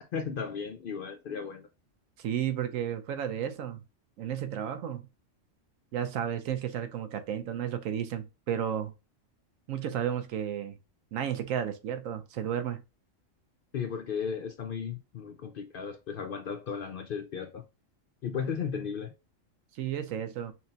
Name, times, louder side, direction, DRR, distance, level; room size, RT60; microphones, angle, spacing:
voice 1, 0.1-1.7 13.7-17.6 18.2-19.1, left 6 dB, 60° left, 0.6 m, -35 dB
voice 2, 2.2-3.8 4.2-5.0 5.9-8.9 9.7-10.8 11.1-12.8 19.7-20.5, right 9 dB, 90° right, 1.1 m, -33 dB
5.7 x 2.2 x 2.7 m
omnidirectional pair, 1.3 m